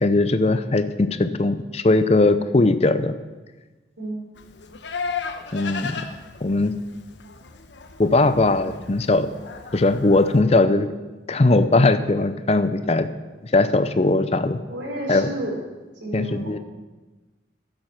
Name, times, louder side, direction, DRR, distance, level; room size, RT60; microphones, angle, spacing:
voice 1, 0.0-3.1 5.5-6.0 6.4-6.7 8.0-9.3 9.7-10.9 11.3-13.1 13.4-14.6 15.1-15.3 16.1-16.6, left 2 dB, 35° left, 12 dB, 0.5 m, -19 dB
Livestock farm animals working animals, 4.4-10.4, left 5 dB, 75° left, 0.9 m, -35 dB
voice 2, 14.7-15.6 16.0-16.6, right 1 dB, 80° right, -2 dB, 4.0 m, -31 dB
13.5 x 7.9 x 5.8 m, 1.2 s
head